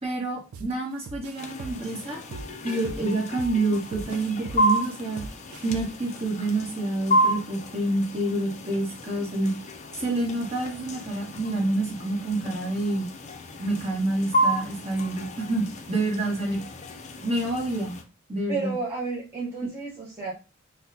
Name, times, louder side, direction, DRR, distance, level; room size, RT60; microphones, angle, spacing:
voice 1, 0.0-2.2 2.6-5.2 5.6-9.5 9.9-13.1 13.6-16.6 17.2-18.0 18.3-18.7, right 2 dB, 30° right, -1 dB, 1.2 m, -28 dB
sound 1, 0.5-0.7 1.1-3.6 3.9-6.1, right 3 dB, 85° right, 0.4 m, -39 dB
sound 2, 1.4-18.0, right 1 dB, 35° left, 0.5 m, -31 dB
voice 2, 18.5-20.3, right 4 dB, 10° right, -7 dB, 0.7 m, -31 dB
5.7 x 2.2 x 2.6 m, 0.32 s
head